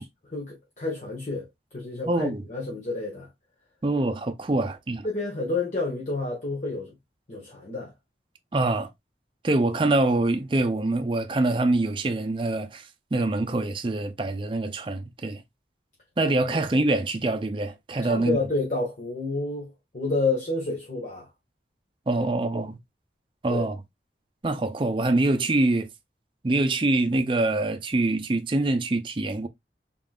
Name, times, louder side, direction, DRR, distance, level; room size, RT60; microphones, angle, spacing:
voice 1, 0.0-1.5 1.7-3.3 4.5-4.7 5.0-6.9 7.3-7.9 18.0-21.3 22.4-22.6 23.5-23.7, left 3 dB, 45° left, 1.1 m, -30 dB
voice 2, 2.1-2.4 3.8-5.1 8.5-8.9 9.4-12.9 13.1-15.4 16.2-18.4 22.1-22.8 23.4-23.8 24.4-25.9 26.4-29.5, right 2 dB, 30° right, 0.5 m, -25 dB
3.8 x 3.7 x 2.3 m
head